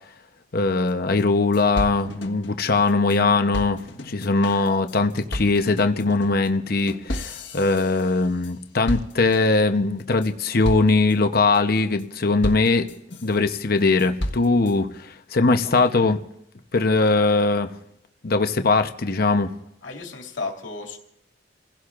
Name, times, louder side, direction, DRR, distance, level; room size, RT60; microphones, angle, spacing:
voice 1, 0.5-12.9 13.2-16.2 16.7-17.7 18.2-19.5, left 3 dB, 55° left, 7 dB, 0.9 m, -21 dB
sound 1, 0.9-1.0 1.2-1.3 1.5-3.2 3.5-8.6 8.9-9.6 10.0-10.3 10.6-11.1 11.5-12.0 12.4-13.4 13.8-14.7, left 1 dB, 70° left, 1.6 m, -33 dB
voice 2, 15.6-16.1 19.8-21.0, left 3 dB, 85° left, 1 dB, 2.5 m, -35 dB
29.0 x 16.0 x 2.5 m, 0.81 s
head